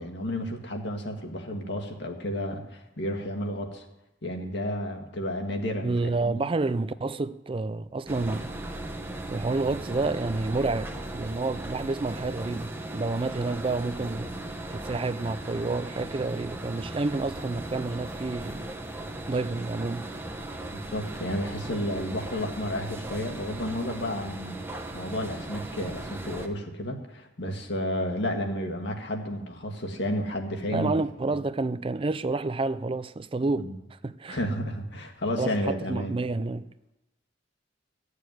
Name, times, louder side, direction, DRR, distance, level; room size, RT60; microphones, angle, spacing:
voice 1, 0.0-3.8 4.2-6.4 20.7-24.6 24.9-30.9 33.6-33.7 34.3-36.2, equal, 60° left, 2.0 m, -32 dB
voice 2, 5.8-8.5 9.3-14.4 14.7-18.6 19.3-20.1 30.7-34.4 35.4-36.7, right 3 dB, 30° right, 0.4 m, -29 dB
sound 1, 8.1-26.5, right 1 dB, 10° right, 1.1 m, -38 dB
14.5 x 6.7 x 9.4 m
head